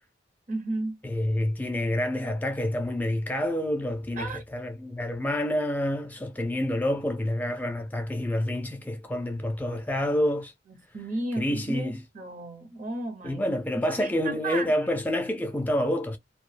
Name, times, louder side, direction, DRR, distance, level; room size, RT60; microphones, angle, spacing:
voice 1, 0.5-1.0 4.2-4.4 10.7-14.7, right 2 dB, 45° right, 0.8 m, -34 dB
voice 2, 1.0-10.5 11.4-12.0 13.2-16.2, left 1 dB, 10° left, 0.3 m, -28 dB
2.3 x 2.1 x 3.1 m
head